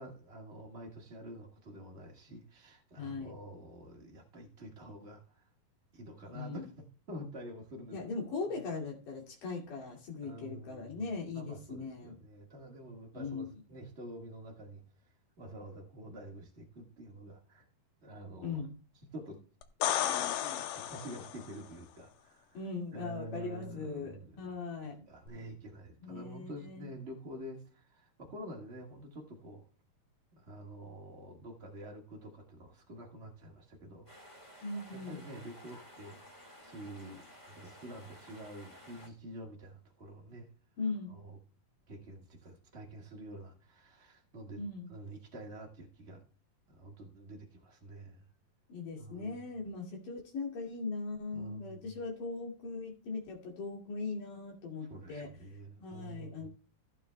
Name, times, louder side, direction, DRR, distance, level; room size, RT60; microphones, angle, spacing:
voice 1, 0.0-5.4 5.9-8.0 8.4-8.6 10.2-14.8 15.4-17.6 18.0-18.6 19.1-19.4 20.0-22.6 22.9-24.3 25.1-29.7 30.3-34.1 34.9-36.2 36.6-40.5 41.1-41.4 41.9-44.6 44.9-46.2 46.7-48.3 49.0-49.5 51.3-52.0 54.8-56.5, right 1 dB, 70° right, 0.6 m, -48 dB
voice 2, 3.0-3.3 6.3-6.7 7.9-12.2 13.1-13.4 18.4-18.7 22.5-25.1 26.0-26.9 34.6-35.2 40.8-41.1 44.6-44.9 48.7-55.3 55.8-56.5, left 4 dB, 65° left, 3.8 m, -39 dB
sound 1, 19.6-21.5 25.3-25.4, left 12 dB, 85° left, 2.5 m, -33 dB
sound 2, 34.1-39.1, equal, 20° left, 0.9 m, -54 dB
15.0 x 8.9 x 2.3 m
omnidirectional pair, 4.1 m